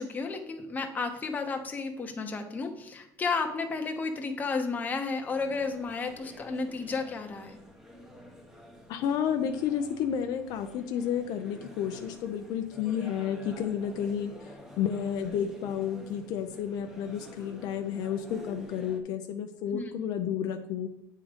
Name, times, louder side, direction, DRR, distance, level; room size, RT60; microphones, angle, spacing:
voice 1, 0.0-7.6 19.7-19.9, left 4 dB, 20° left, 4 dB, 0.9 m, -32 dB
sound 1, 5.3-19.0, left 1 dB, 5° right, 0.9 m, -49 dB
voice 2, 8.9-20.9, left 8 dB, 55° left, 6 dB, 0.5 m, -31 dB
8.4 x 3.7 x 5.1 m, 0.83 s
cardioid pair, 140°, 8 cm